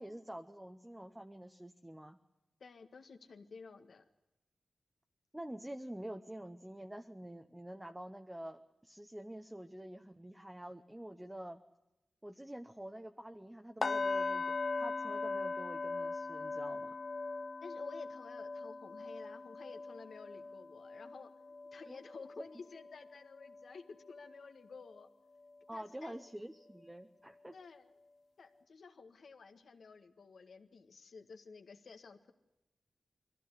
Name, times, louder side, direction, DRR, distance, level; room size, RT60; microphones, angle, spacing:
voice 1, 0.0-2.2 5.3-11.6 12.2-17.0 21.9-22.0 22.4-22.5 25.7-27.6, right 1 dB, 10° right, 6 dB, 0.8 m, -47 dB
voice 2, 2.6-4.0 17.6-21.3 21.7-25.1 25.7-26.3 27.5-27.9 28.4-32.3, left 4 dB, 70° left, 7 dB, 1.7 m, -53 dB
sound 1, 13.8-23.7 24.1-24.4 24.8-24.9, left 3 dB, 40° left, 0.8 m, -40 dB
22.5 x 15.0 x 9.7 m, 0.93 s
wide cardioid pair, 115°, 0 cm